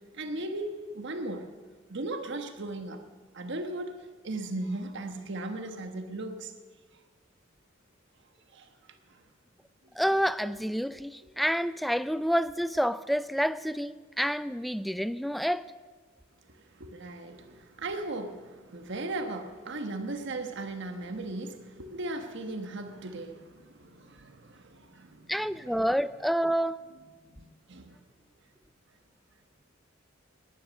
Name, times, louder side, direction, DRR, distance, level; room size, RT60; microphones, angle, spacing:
voice 1, 0.1-1.5 1.9-3.0 3.3-6.5 8.5-8.7 9.1-9.2 16.5-25.4 25.6-25.8 27.2-28.0, right 2 dB, 65° right, 1.3 m, -37 dB
voice 2, 10.0-15.7 25.3-26.8, equal, ahead, 0.4 m, -28 dB
19.5 x 10.5 x 6.4 m
head